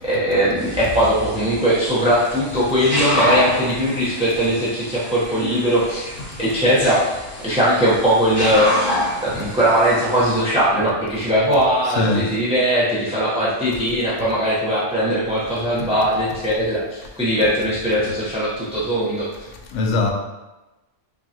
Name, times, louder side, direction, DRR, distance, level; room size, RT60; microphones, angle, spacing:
voice 1, 0.0-6.1 6.4-7.0 7.4-19.3, equal, 5° right, 0.6 m, -20 dB
sound 1, 0.6-10.4, left 1 dB, 45° left, 1.3 m, -28 dB
voice 2, 12.0-12.4 15.8-15.9 19.7-20.1, left 3 dB, 75° left, 0.9 m, -22 dB
5.2 x 2.3 x 2.8 m
omnidirectional pair, 1.3 m